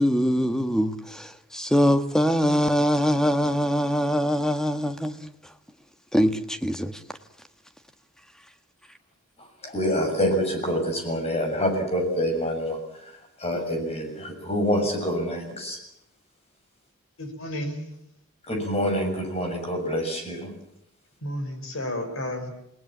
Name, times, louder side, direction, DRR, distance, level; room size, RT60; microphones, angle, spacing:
voice 1, 0.0-5.3 6.1-7.0, equal, 5° left, 1.4 m, -23 dB
voice 2, 9.6-12.8 13.4-15.8 18.5-20.5, equal, 30° left, 6.9 m, -26 dB
voice 3, 17.2-17.8 21.2-22.5, left 1 dB, 65° left, 5.9 m, -32 dB
29.0 x 19.5 x 7.4 m
head